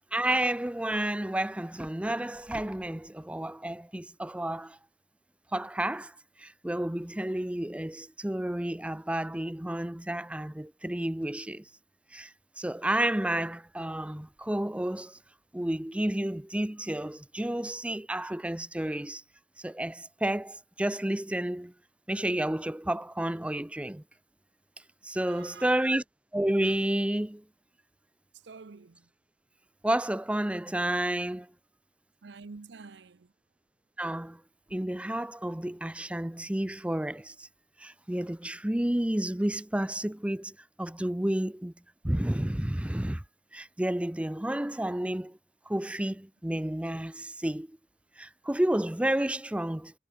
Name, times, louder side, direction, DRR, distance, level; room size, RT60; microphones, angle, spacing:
voice 1, 0.1-4.8 5.5-11.7 12.1-15.2 15.5-19.2 19.6-21.7 22.1-24.0 25.0-26.0 26.3-27.4 29.8-31.5 34.0-34.4 34.7-37.5 37.8-41.7 42.0-43.2 43.5-45.4 45.7-47.8 48.2-49.9, right 1 dB, 5° right, 0.5 m, -31 dB
voice 2, 25.2-25.7 28.4-29.1 32.2-33.3, right 4 dB, 75° right, 0.7 m, -48 dB
head